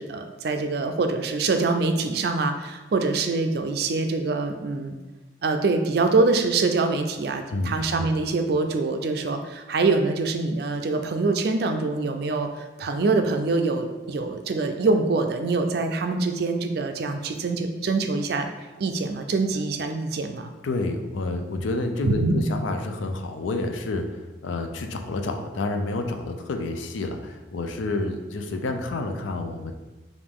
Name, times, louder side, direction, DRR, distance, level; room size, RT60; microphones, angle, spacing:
voice 1, 0.0-5.0 5.4-18.5 18.8-20.5 22.0-22.4, right 3 dB, 55° right, 6 dB, 0.4 m, -24 dB
voice 2, 7.5-7.8 20.6-24.0 24.4-29.7, left 2 dB, 90° left, 5 dB, 0.5 m, -29 dB
4.8 x 2.6 x 3.6 m, 1.2 s
head